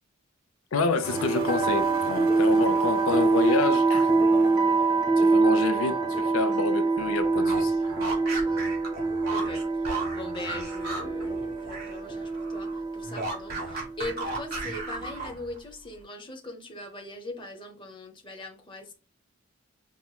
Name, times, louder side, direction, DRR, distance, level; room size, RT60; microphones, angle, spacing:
voice 1, 0.7-4.1 5.2-7.8, left 4 dB, 90° left, 0.5 m, -28 dB
sound 1, 1.0-15.1, right 3 dB, 20° right, 0.7 m, -25 dB
sound 2, 1.0-5.4, right 6 dB, 85° right, 0.4 m, -43 dB
sound 3, 7.3-12.0 12.3-15.6, right 2 dB, 50° right, 1.4 m, -35 dB
voice 2, 9.3-9.9 10.1-18.9, left 2 dB, 25° left, 0.7 m, -40 dB
5.5 x 2.1 x 2.2 m
head